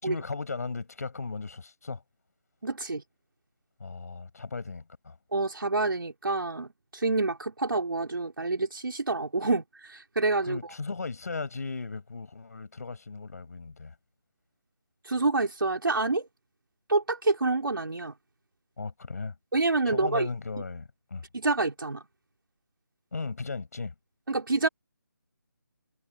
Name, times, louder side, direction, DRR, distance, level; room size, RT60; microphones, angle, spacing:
voice 1, 0.0-2.0 3.8-5.2 10.4-13.9 18.8-19.3 19.8-21.3 23.1-23.9, left 4 dB, 50° left, 6.7 m, -36 dB
voice 2, 2.6-3.0 5.3-10.6 15.0-16.3 16.9-18.1 19.5-20.3 21.3-22.0 24.3-24.7, right 3 dB, 80° right, 3.6 m, -27 dB
figure-of-eight pair, 175°, 11 cm